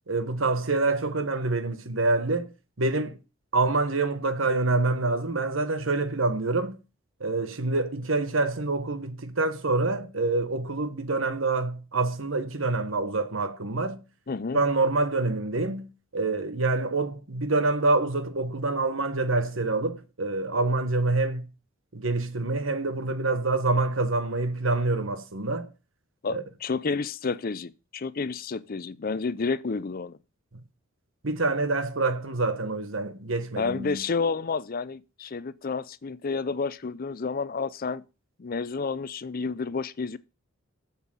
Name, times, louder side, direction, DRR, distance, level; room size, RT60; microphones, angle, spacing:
voice 1, 0.1-2.5 2.8-3.2 3.5-6.8 7.2-14.0 14.5-15.9 16.1-21.5 21.9-25.7 26.3-26.4 31.2-34.0, right 3 dB, 70° right, 1.2 m, -26 dB
voice 2, 14.3-14.6 26.2-30.2 33.6-38.0 38.4-40.2, left 4 dB, 45° left, 0.5 m, -30 dB
7.4 x 7.3 x 7.5 m
head